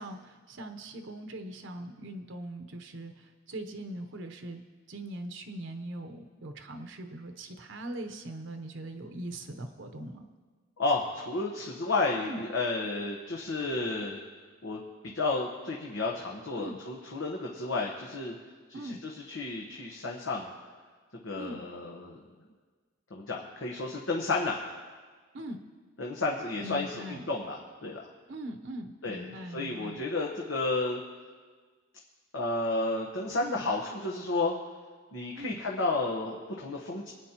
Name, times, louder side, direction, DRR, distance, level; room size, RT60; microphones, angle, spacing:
voice 1, 0.0-4.6 4.9-10.3 12.2-12.5 16.6-16.8 18.7-19.0 21.4-21.6 25.3-25.6 26.6-27.3 28.3-30.0 33.4-33.7 35.3-35.6, right 1 dB, 70° right, 7 dB, 0.9 m, -41 dB
voice 2, 10.8-14.2 14.6-14.8 15.0-18.4 18.7-20.5 21.2-22.2 23.1-24.6 26.0-28.1 29.0-29.3 29.5-31.0 32.3-34.6 35.1-37.1, left 3 dB, 80° left, -1 dB, 1.1 m, -32 dB
24.5 x 9.4 x 2.9 m, 1.5 s
head